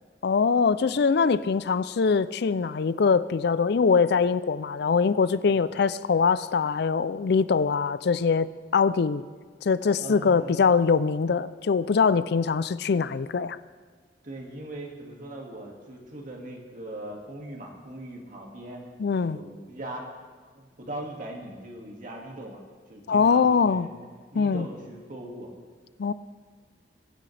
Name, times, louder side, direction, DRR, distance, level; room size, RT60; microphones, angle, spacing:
voice 1, 0.2-9.2 9.6-13.6 19.0-19.4 23.1-23.9 24.3-24.7 26.0-26.1, left 5 dB, 65° left, 16 dB, 0.4 m, -23 dB
voice 2, 10.0-10.6 14.2-18.8 19.3-20.1 20.5-22.6 22.9-24.1 24.3-25.5, right 1 dB, 50° right, 0 dB, 2.2 m, -40 dB
21.0 x 10.0 x 3.4 m, 1.5 s
head